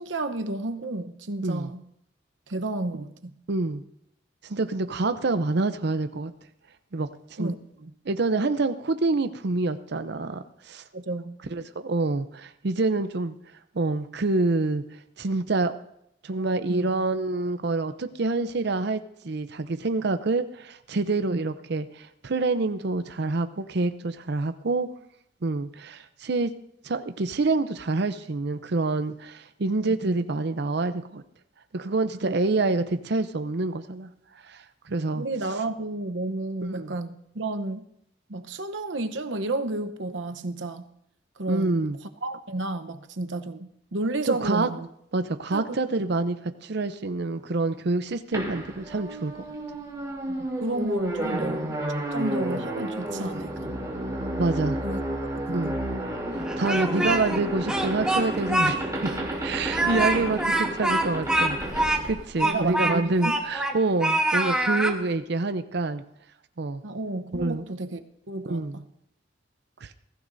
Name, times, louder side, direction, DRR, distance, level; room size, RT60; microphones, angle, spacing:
voice 1, 0.0-1.8 2.5-3.3 7.4-7.9 10.9-11.4 16.7-16.9 21.3-21.5 30.0-30.1 32.2-32.4 35.1-37.9 38.3-40.8 41.4-41.8 42.2-44.9 45.5-45.7 50.3-51.7 52.1-53.8 54.8-55.0 55.5-55.7 62.4-63.3 66.8-68.0 68.3-68.9, right 2 dB, 90° right, 8 dB, 0.9 m, -31 dB
voice 2, 3.5-3.8 4.4-6.3 6.9-7.5 8.1-10.8 11.5-13.3 13.7-14.8 15.2-15.8 16.2-24.9 25.4-26.5 26.8-31.2 31.7-34.1 34.4-35.2 36.6-36.9 41.5-42.0 44.3-44.7 45.1-46.4 46.6-49.4 51.3-51.5 54.4-54.8 55.5-55.8 56.6-59.1 59.4-66.0 66.6-66.8 67.3-67.7 68.5-68.8 69.8-69.9, right 3 dB, 65° right, 10 dB, 0.6 m, -27 dB
sound 1, 48.3-62.9, right 1 dB, 20° right, 3.0 m, -31 dB
Speech, 56.4-57.4 57.7-58.7 59.1-59.2 59.7-65.0, right 1 dB, 5° right, 1.4 m, -25 dB
21.5 x 15.0 x 2.7 m, 0.77 s
head